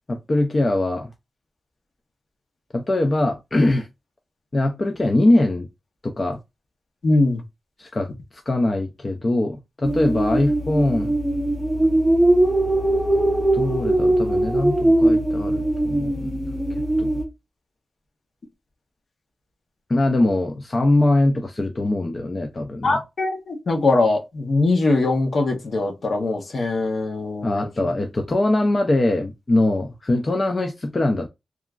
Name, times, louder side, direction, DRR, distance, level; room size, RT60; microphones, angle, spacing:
voice 1, 0.1-1.1 2.7-3.9 4.5-5.7 6.0-6.4 7.8-8.1 8.5-11.2 13.5-16.5 17.0-17.1 19.9-23.0 27.4-31.3, left 2 dB, 30° left, 0.3 m, -22 dB
voice 2, 7.0-7.4 22.8-27.9, left 2 dB, 55° left, 0.7 m, -22 dB
sound 1, 9.8-17.2, right 1 dB, 5° right, 0.6 m, -20 dB
2.9 x 2.4 x 2.3 m
wide cardioid pair, 145°, 0 cm